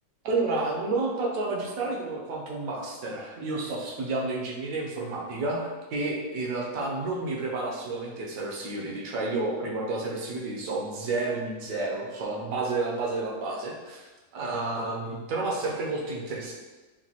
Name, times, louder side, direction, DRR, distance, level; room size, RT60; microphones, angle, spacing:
voice 1, 0.2-16.5, right 3 dB, 65° right, -2 dB, 1.2 m, -30 dB
5.9 x 2.3 x 2.8 m, 1.3 s
omnidirectional pair, 1.6 m